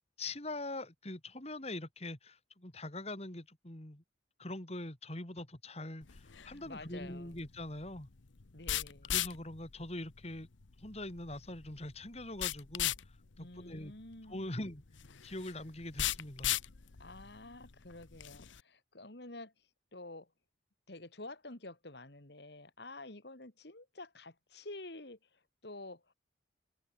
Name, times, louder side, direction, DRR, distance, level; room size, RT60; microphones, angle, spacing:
voice 1, 0.2-4.0 4.4-8.1 9.0-10.5 10.8-13.9 14.3-14.8 15.2-16.6, left 1 dB, 35° left, 2.8 m, -43 dB
sound 1, 6.0-18.6, left 12 dB, 80° left, 0.9 m, -39 dB
voice 2, 6.7-7.3 8.5-9.1 13.4-14.6 17.0-19.5 19.9-20.3 20.9-26.1, left 2 dB, 60° left, 2.4 m, -49 dB
head